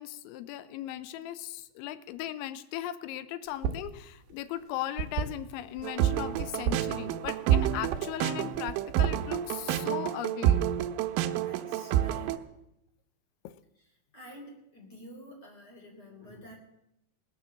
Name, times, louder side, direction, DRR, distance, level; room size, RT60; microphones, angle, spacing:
voice 1, 0.0-10.7 13.4-13.6, left 13 dB, 80° left, 13 dB, 3.0 m, -38 dB
sound 1, 3.5-3.9 4.2-5.8 6.3-7.4 7.6-8.0 8.5-9.4, right 8 dB, 70° right, 3.1 m, -34 dB
sound 2, 5.8-12.4, right 11 dB, 85° right, 3.3 m, -28 dB
voice 2, 11.4-12.4 14.1-16.5, equal, 20° left, 0 dB, 3.7 m, -49 dB
18.5 x 10.5 x 7.4 m, 0.84 s
omnidirectional pair, 5.6 m